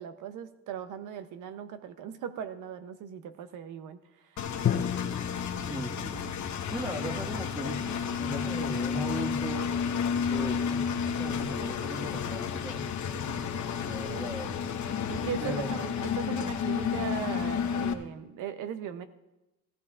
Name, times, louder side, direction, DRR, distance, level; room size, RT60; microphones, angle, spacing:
voice 1, 0.0-4.5 15.1-19.0, right 8 dB, 85° right, 10 dB, 0.7 m, -38 dB
Engine, 4.4-17.9, left 7 dB, 70° left, 1.0 m, -31 dB
Drum, 4.6-8.4, left 9 dB, 40° left, 0.5 m, -34 dB
voice 2, 5.5-6.2 6.7-9.7 10.3-12.9 13.8-14.7 15.4-15.8, equal, 10° right, 3 dB, 1.6 m, -38 dB
16.0 x 15.5 x 2.4 m, 1.0 s
cardioid pair, 90°, 30 cm